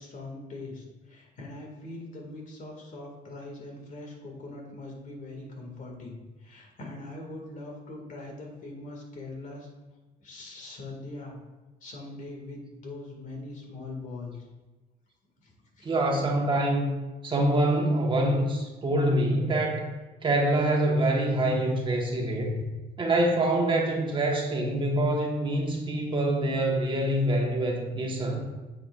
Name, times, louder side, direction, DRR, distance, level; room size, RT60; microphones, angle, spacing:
voice 1, 0.0-9.7 10.2-11.4 11.8-14.5 15.4-15.9, left 2 dB, 50° left, 0 dB, 2.1 m, -42 dB
voice 2, 15.8-16.9 17.2-19.9 20.2-22.6 23.0-28.4, right 1 dB, 30° right, 0 dB, 1.4 m, -25 dB
9.0 x 7.2 x 2.5 m, 1.2 s
cardioid pair, 110°, 17 cm